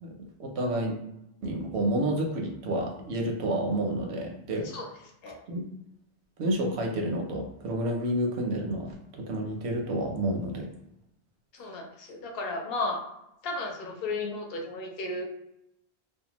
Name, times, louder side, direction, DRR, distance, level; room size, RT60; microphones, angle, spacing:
voice 1, 0.0-1.0 1.4-4.7 5.5-5.6 6.4-10.7, right 1 dB, 85° right, 2 dB, 0.9 m, -30 dB
voice 2, 11.5-13.0 13.4-15.2, left 2 dB, 65° left, 1 dB, 0.8 m, -34 dB
2.6 x 2.2 x 2.9 m, 0.85 s
omnidirectional pair, 1.1 m